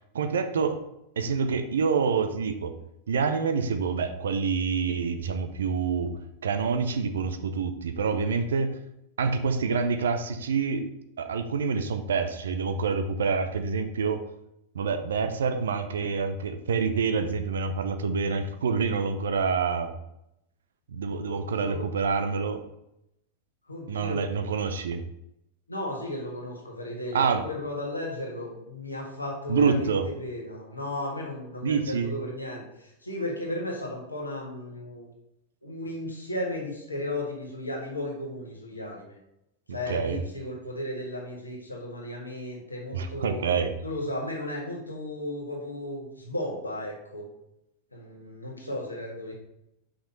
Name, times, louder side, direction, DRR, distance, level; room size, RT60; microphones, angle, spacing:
voice 1, 0.1-0.8 1.2-2.7 3.1-6.1 6.4-8.7 9.2-10.8 11.2-14.2 14.7-19.9 20.9-22.6 23.9-25.0 27.1-27.4 29.5-30.1 31.6-32.1 39.7-40.2 42.9-43.7, right 5 dB, 65° right, 8 dB, 0.6 m, -27 dB
voice 2, 21.2-21.9 23.7-24.3 25.7-35.1 35.6-39.2 39.7-43.5 43.8-47.3 47.9-49.3, left 1 dB, 80° left, -1 dB, 1.5 m, -35 dB
5.8 x 5.4 x 3.9 m, 0.83 s
figure-of-eight pair, 90°, 0 cm